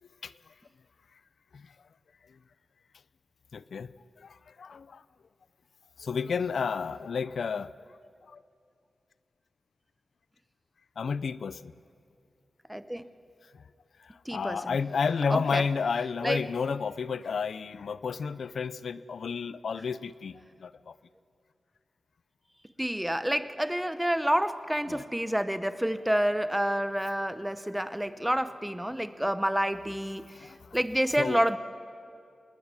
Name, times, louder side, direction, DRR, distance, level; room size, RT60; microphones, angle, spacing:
voice 1, 3.5-5.0 6.0-7.7 8.3-8.4 11.0-11.7 13.5-13.6 14.0-21.0 24.9-25.0 30.3-30.8 31.2-31.6, left 5 dB, 75° left, 16 dB, 0.6 m, -32 dB
voice 2, 12.7-13.1 14.3-14.8 15.3-15.6 16.2-16.4 22.8-31.6, equal, 5° right, 12 dB, 0.8 m, -29 dB
25.5 x 20.0 x 9.7 m, 2.4 s
wide cardioid pair, 135°, 0 cm